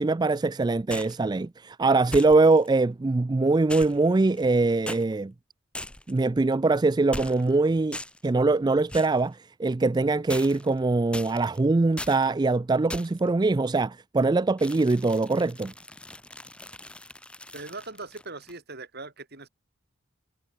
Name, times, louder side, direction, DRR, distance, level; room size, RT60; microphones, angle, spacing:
voice 1, 0.0-5.3 6.1-8.0 8.2-15.7, right 3 dB, 20° right, 0.3 m, -23 dB
sound 1, 0.9-1.2 2.1-2.7 3.7-4.5 4.9-5.0 5.7-6.2 7.1-7.6 7.9-8.3 8.9-9.2 10.3-10.8 11.1-11.6 12.0-12.3 12.9-13.3 14.6-18.6, left 1 dB, 5° left, 4.3 m, -40 dB
voice 2, 17.5-19.5, right 3 dB, 50° right, 6.0 m, -40 dB
head